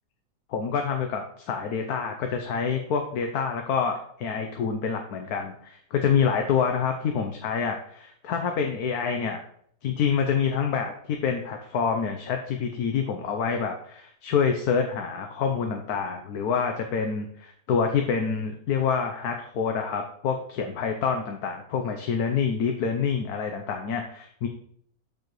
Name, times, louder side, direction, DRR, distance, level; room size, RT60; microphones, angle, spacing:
voice 1, 0.5-9.4 9.8-24.5, left 6 dB, 85° left, 4 dB, 1.3 m, -27 dB
12.5 x 4.8 x 3.1 m, 0.65 s
omnidirectional pair, 1.6 m